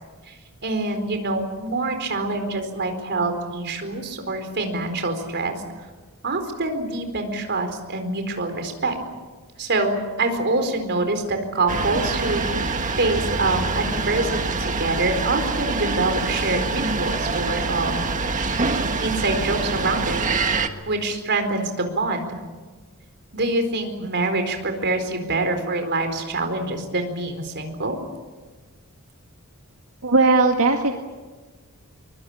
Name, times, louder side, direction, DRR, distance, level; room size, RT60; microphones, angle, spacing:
voice 1, 0.6-5.5 6.2-9.0 9.6-18.1 19.0-20.2 20.9-22.4 23.3-28.0, right 2 dB, 50° right, 6 dB, 4.4 m, -25 dB
sound 1, 11.7-20.7, right 3 dB, 35° right, 1.6 m, -25 dB
voice 2, 30.0-30.9, right 3 dB, 80° right, 3 dB, 2.0 m, -17 dB
23.5 x 23.0 x 8.7 m, 1.3 s
head